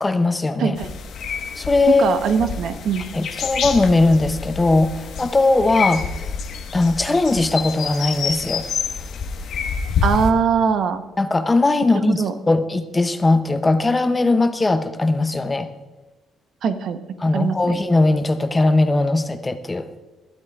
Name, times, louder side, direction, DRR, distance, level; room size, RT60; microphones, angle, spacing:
voice 1, 0.0-0.8 1.6-2.0 3.1-6.1 6.7-8.7 11.2-15.7 17.2-19.9, left 2 dB, 15° left, 10 dB, 0.6 m, -19 dB
voice 2, 0.6-0.9 2.0-3.1 10.0-11.0 12.0-12.3 16.6-17.0 17.3-17.7, right 6 dB, 55° right, 9 dB, 0.8 m, -21 dB
sound 1, 0.8-10.3, left 5 dB, 60° left, 1.2 m, -28 dB
20.5 x 13.0 x 2.4 m, 1.1 s
cardioid pair, 150°, 0 cm